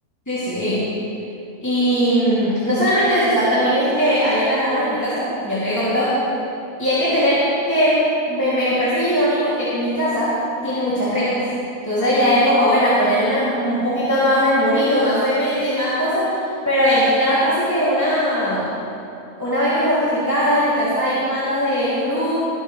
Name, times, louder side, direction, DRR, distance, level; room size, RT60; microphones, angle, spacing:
voice 1, 0.3-0.9 1.6-6.1 6.8-7.4 7.7-8.0 8.3-10.3 10.6-11.4 11.8-16.4 16.6-18.7 19.4-22.4, equal, 10° left, -12 dB, 2.9 m, -19 dB
21.0 x 11.0 x 3.3 m, 2.7 s
omnidirectional pair, 1.5 m